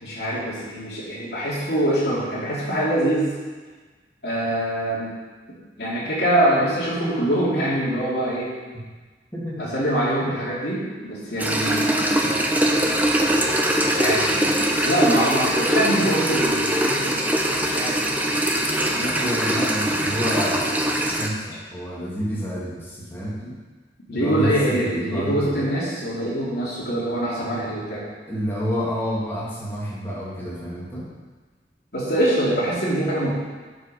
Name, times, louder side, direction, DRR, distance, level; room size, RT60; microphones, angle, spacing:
voice 1, 0.0-3.3 4.2-5.1 5.8-8.5 9.7-12.2 13.9-17.1 17.7-18.0 24.1-28.1 31.9-33.3, right 1 dB, 60° left, -9 dB, 3.0 m, -24 dB
voice 2, 9.3-9.7 10.2-10.4 19.0-23.6 24.1-25.6 28.3-31.1, equal, 15° left, -7 dB, 2.3 m, -29 dB
sound 1, 11.4-21.3, right 1 dB, 10° right, 0.7 m, -22 dB
12.0 x 4.9 x 5.0 m, 1.4 s
head